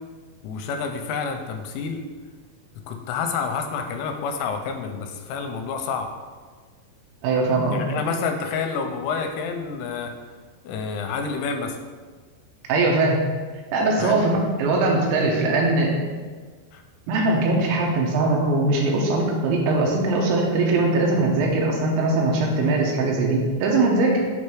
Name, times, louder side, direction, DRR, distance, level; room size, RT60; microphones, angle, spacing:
voice 1, 0.4-2.0 2.9-6.1 7.7-10.1 10.6-11.8 14.0-14.2 16.7-16.8, left 5 dB, 85° left, 5 dB, 3.0 m, -28 dB
voice 2, 7.2-7.8 12.7-13.2 13.7-15.9 17.1-24.2, right 2 dB, 80° right, 0 dB, 3.0 m, -21 dB
7.6 x 3.2 x 4.6 m, 1.5 s
omnidirectional pair, 5.6 m